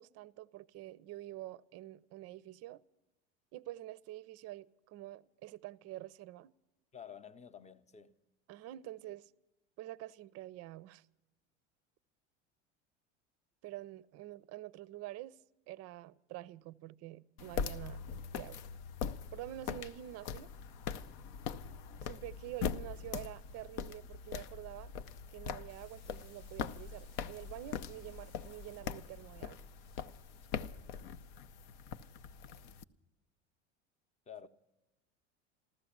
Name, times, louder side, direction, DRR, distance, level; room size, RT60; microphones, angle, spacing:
voice 1, 0.0-2.8 3.5-6.5 8.5-9.3 9.8-11.0 13.6-15.4 15.7-18.0 18.3-18.6 19.3-20.5 22.0-24.9 25.3-29.6, right 15 dB, 45° right, 0.5 m, -47 dB
voice 2, 6.9-8.2 34.3-34.5, left 8 dB, 20° left, 0.7 m, -50 dB
sound 1, 17.4-32.8, left 7 dB, 65° left, 0.6 m, -42 dB
sound 2, 25.7-30.8, left 5 dB, 90° left, 1.2 m, -65 dB
14.5 x 13.5 x 7.1 m
hypercardioid pair, 85°, 35 cm